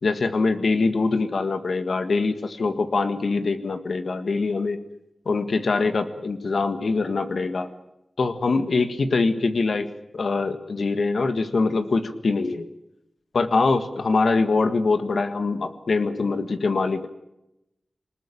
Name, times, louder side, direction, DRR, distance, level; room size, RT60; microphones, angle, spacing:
voice 1, 0.0-4.8 5.2-7.7 8.2-12.7 13.3-17.1, left 3 dB, 75° left, 9 dB, 1.7 m, -23 dB
20.5 x 20.0 x 8.6 m, 0.89 s
cardioid pair, 55°, 0 cm